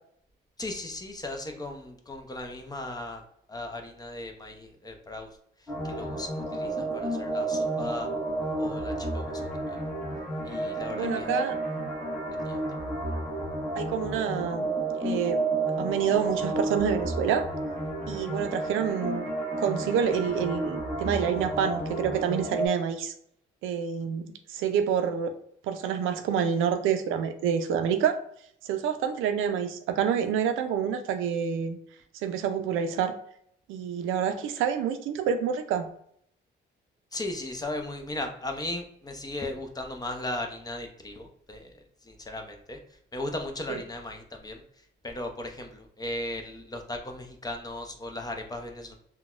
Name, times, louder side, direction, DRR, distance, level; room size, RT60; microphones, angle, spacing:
voice 1, 0.6-3.2 3.5-5.3 5.6-8.1 8.6-9.3 9.7-9.8 10.4-11.3 12.4-12.6 37.1-42.8 43.1-44.6 45.0-49.0, left 1 dB, 20° left, 4 dB, 0.6 m, -37 dB
sound 1, 5.7-22.7, right 2 dB, 5° left, 1.3 m, -31 dB
voice 2, 10.9-11.6 13.8-14.7 15.0-15.4 15.8-17.5 18.1-19.2 19.6-23.1 23.6-25.3 25.6-28.2 28.6-31.8 32.2-33.2 33.7-35.9 43.7-43.8, right 8 dB, 90° right, 8 dB, 0.4 m, -27 dB
3.9 x 2.2 x 2.4 m, 0.67 s
cardioid pair, 90°, 20 cm